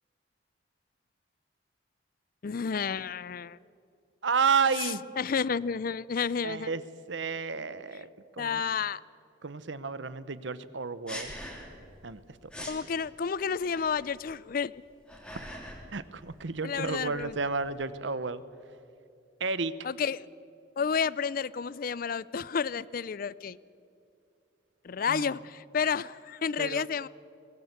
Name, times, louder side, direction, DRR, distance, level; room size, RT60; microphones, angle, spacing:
voice 1, 2.4-3.6 5.2-6.8 8.4-9.0 12.7-14.7 16.6-17.3 19.8-20.3 20.8-23.6 24.8-27.1, left 6 dB, 50° left, 20 dB, 0.4 m, -31 dB
voice 2, 4.2-5.0 6.4-6.8 7.1-8.1 8.3-8.6 9.4-11.3 12.0-12.2 12.6-12.7 15.9-18.4 19.4-19.7 25.1-25.3 26.6-26.9, right 5 dB, 75° right, 15 dB, 0.9 m, -31 dB
sound 1, 11.1-11.9 12.2-12.3 12.5-12.8 13.7-14.2 14.8-15.9 16.2-17.9, equal, 5° left, 2.9 m, -43 dB
22.0 x 18.0 x 8.2 m, 2.5 s
head